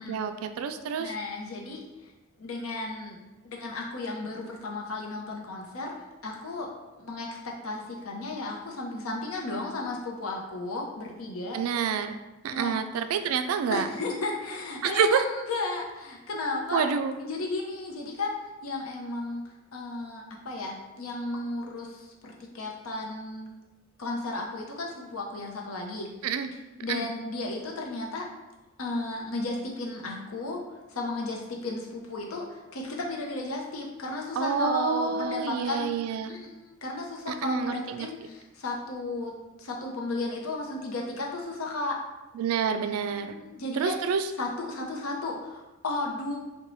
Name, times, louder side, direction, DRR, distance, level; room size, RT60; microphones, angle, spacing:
voice 1, 0.0-1.1 11.5-12.2 12.4-13.9 14.8-15.2 16.7-17.2 26.2-26.5 26.9-27.1 34.4-36.3 37.3-38.1 42.3-43.3 43.7-44.3, right 6 dB, 85° right, 11 dB, 0.3 m, -28 dB
voice 2, 1.0-2.1 2.4-3.2 3.4-5.9 6.2-6.7 7.0-11.6 12.5-12.8 13.7-16.8 17.2-19.4 19.7-23.5 24.0-26.1 26.8-28.3 28.8-30.6 30.9-36.0 36.3-39.3 39.6-42.0 43.1-44.0 44.4-46.4, left 2 dB, 80° left, -1 dB, 0.7 m, -34 dB
3.0 x 2.2 x 3.9 m, 1.1 s
head